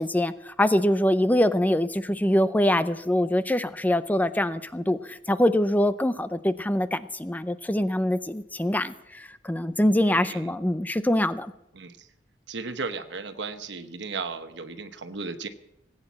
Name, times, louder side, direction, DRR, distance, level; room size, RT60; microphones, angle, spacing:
voice 1, 0.0-11.5, left 1 dB, 10° left, 13 dB, 0.5 m, -24 dB
voice 2, 10.1-10.5 11.7-12.1 12.5-15.5, right 4 dB, 75° right, 8 dB, 1.0 m, -35 dB
18.5 x 8.9 x 7.3 m, 0.85 s
head